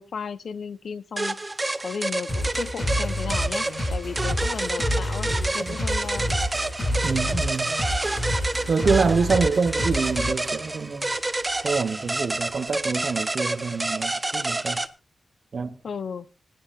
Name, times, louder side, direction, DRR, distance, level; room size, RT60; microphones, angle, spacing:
voice 1, 0.0-1.4 1.8-6.3 15.8-16.3, left 6 dB, 75° left, 0.8 m, -34 dB
sound 1, 1.2-14.9, right 2 dB, 20° right, 0.7 m, -28 dB
sound 2, 2.3-10.3, left 1 dB, 30° left, 7.0 m, -28 dB
sound 3, 3.6-13.2, equal, 15° left, 4.6 m, -48 dB
voice 2, 7.0-7.7 8.7-11.2 11.6-14.8 15.5-15.8, right 5 dB, 50° right, 1.0 m, -26 dB
26.5 x 9.6 x 2.5 m
wide cardioid pair, 150°, 0 cm